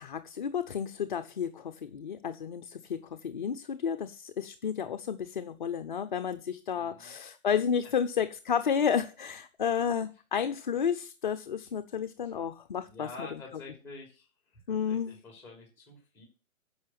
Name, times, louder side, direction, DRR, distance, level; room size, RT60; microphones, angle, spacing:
voice 1, 0.0-13.1 14.7-15.2, left 7 dB, 35° left, 0.6 m, -31 dB
voice 2, 6.7-7.1 7.8-7.9 12.8-16.3, left 2 dB, 5° left, 3.1 m, -48 dB
9.6 x 5.7 x 7.5 m
hypercardioid pair, 155°, 42 cm